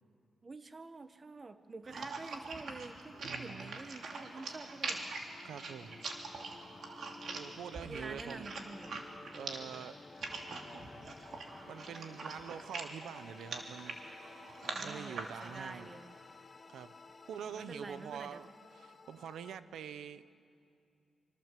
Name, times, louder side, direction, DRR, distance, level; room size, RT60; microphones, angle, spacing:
voice 1, 0.4-5.1 7.9-8.9 14.7-16.1 17.5-18.4, right 3 dB, 30° right, 10 dB, 1.2 m, -48 dB
sound 1, 1.2-19.6, left 3 dB, 30° left, 1.0 m, -55 dB
sound 2, 1.8-15.6, right 3 dB, 60° right, 2.9 m, -43 dB
voice 2, 3.2-3.8 5.4-6.0 7.3-8.5 9.3-10.0 11.6-15.9 16.7-16.9 17.3-20.3, right 8 dB, 90° right, 14 dB, 0.8 m, -46 dB
25.5 x 25.0 x 7.6 m, 2.6 s
cardioid pair, 110°, 0 cm